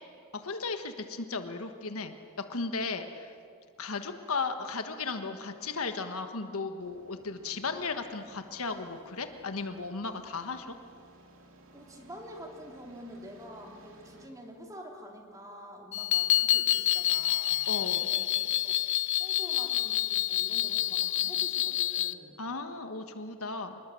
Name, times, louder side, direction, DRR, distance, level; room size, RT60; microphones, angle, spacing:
voice 1, 0.3-3.3 3.8-10.8 17.7-18.1 22.4-23.8, left 4 dB, 75° left, 7 dB, 1.5 m, -35 dB
sound 1, 6.8-14.3, right 1 dB, 60° right, 2.8 m, -57 dB
voice 2, 11.7-17.6 18.1-18.3 18.6-18.8 19.2-22.4, equal, 15° right, 1 dB, 3.2 m, -47 dB
sound 2, 15.9-22.1, left 13 dB, 55° left, 0.5 m, -28 dB
26.0 x 21.0 x 7.7 m, 2.4 s
head